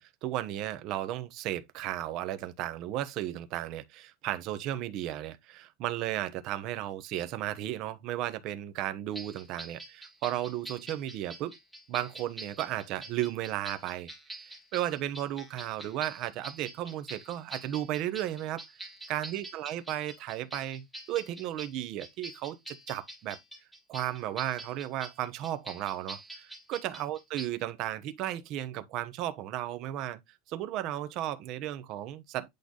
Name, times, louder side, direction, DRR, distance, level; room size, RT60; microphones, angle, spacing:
voice 1, 0.0-11.6 11.9-14.1 14.4-23.4 23.9-30.2 30.5-32.5, right 13 dB, 45° right, 1.0 m, -34 dB
sound 1, 9.1-27.5, right 1 dB, ahead, 1.6 m, -46 dB
8.6 x 3.3 x 3.9 m
supercardioid pair, 155°, 0 cm